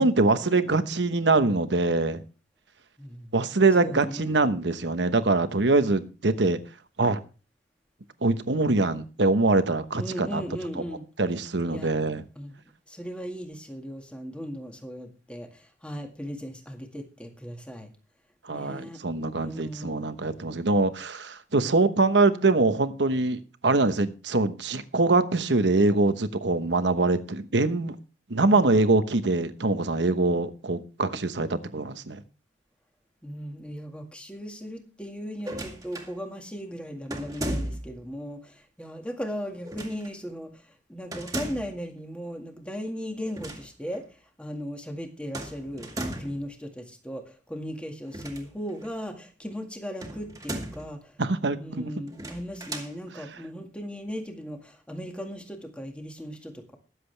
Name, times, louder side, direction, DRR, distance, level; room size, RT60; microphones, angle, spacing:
voice 1, 0.0-2.2 3.3-6.6 7.0-7.2 8.2-10.4 11.2-12.2 18.5-27.9 28.3-32.2 51.2-51.9, right 3 dB, 85° right, 1.1 m, -23 dB
voice 2, 3.0-3.4 3.8-4.4 10.0-11.0 11.7-11.9 12.4-17.9 18.5-19.0 19.3-20.0 33.2-40.6 40.9-51.1 51.6-56.8, equal, 5° left, 1.9 m, -37 dB
sound 1, 35.4-36.1 37.1-38.0 39.6-40.1 41.1-41.8 43.2-43.7 43.9-44.0 45.3-46.4 48.0-48.9 50.0-50.9 52.1-52.9, right 1 dB, 20° right, 2.1 m, -36 dB
21.5 x 7.7 x 3.3 m
head